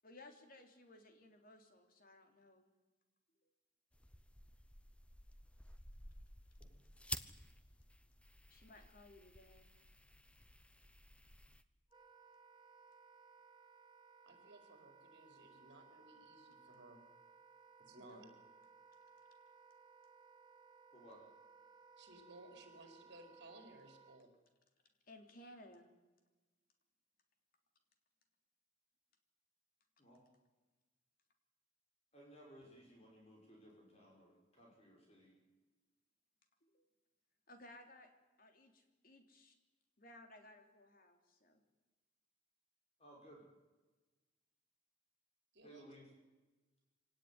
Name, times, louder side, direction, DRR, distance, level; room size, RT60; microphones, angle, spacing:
voice 1, 0.0-2.7 3.4-3.5 8.5-9.7 18.0-18.3 25.1-25.9 36.6-36.9 37.5-38.1 38.4-39.5 40.0-41.6, left 1 dB, 50° left, 5 dB, 3.4 m, -59 dB
sound 1, 3.9-11.6, left 1 dB, 5° left, 0.8 m, -52 dB
Wind instrument woodwind instrument, 11.9-24.2, right 5 dB, 25° right, 1.3 m, -63 dB
voice 2, 14.3-17.0 17.8-18.3 22.0-24.3 45.5-45.9, right 2 dB, 65° right, 5 dB, 4.5 m, -59 dB
voice 3, 32.1-35.3 43.0-43.4 45.6-46.1, equal, 35° left, -1 dB, 6.2 m, -60 dB
25.0 x 18.0 x 9.6 m, 1.2 s
head